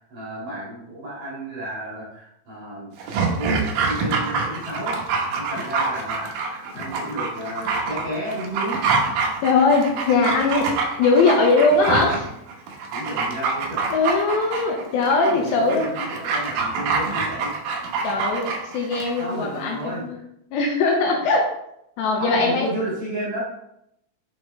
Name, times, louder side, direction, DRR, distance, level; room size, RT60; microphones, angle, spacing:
voice 1, 0.0-2.9 3.2-4.9 5.2-8.8 12.9-13.9 15.2-17.5 19.2-20.2 22.2-23.4, right 1 dB, 50° right, -7 dB, 2.6 m, -32 dB
Dog, 3.0-19.2 19.5-19.6, right 4 dB, 80° right, 2.0 m, -26 dB
voice 2, 9.4-10.7 11.0-12.3 13.9-15.9 18.0-20.2 20.5-21.5 22.0-22.7, left 3 dB, 80° left, 1 dB, 2.7 m, -20 dB
7.1 x 5.4 x 3.2 m, 0.78 s
omnidirectional pair, 5.5 m